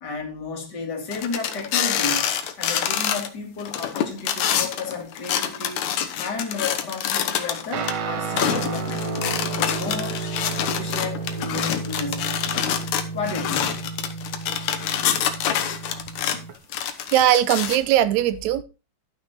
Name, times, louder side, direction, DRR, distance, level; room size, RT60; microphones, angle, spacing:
voice 1, 0.0-2.3 2.6-5.8 6.2-10.2 10.6-12.5 13.1-13.9, left 4 dB, 35° left, 2.7 m, -32 dB
sound 1, 1.1-3.3 3.6-7.9 8.3-16.4 16.7-17.8, left 9 dB, 80° left, 2.4 m, -26 dB
Guitar, 7.7-16.5, right 5 dB, 65° right, 1.4 m, -32 dB
voice 2, 17.1-18.6, right 12 dB, 80° right, 2.0 m, -19 dB
12.5 x 6.1 x 4.2 m
omnidirectional pair, 3.3 m